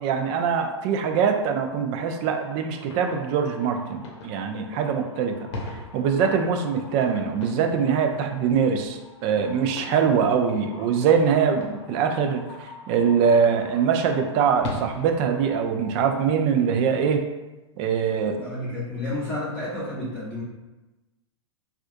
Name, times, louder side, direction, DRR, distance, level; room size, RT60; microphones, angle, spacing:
voice 1, 0.0-5.4 5.9-12.4 12.9-17.2 17.8-18.4, right 6 dB, 40° right, 5 dB, 0.4 m, -23 dB
sound 1, 2.0-16.0, left 2 dB, 70° left, 0.8 m, -41 dB
voice 2, 18.4-20.4, left 2 dB, 10° left, -9 dB, 0.9 m, -31 dB
3.3 x 2.4 x 2.6 m, 1.1 s
hypercardioid pair, 115°, 15 cm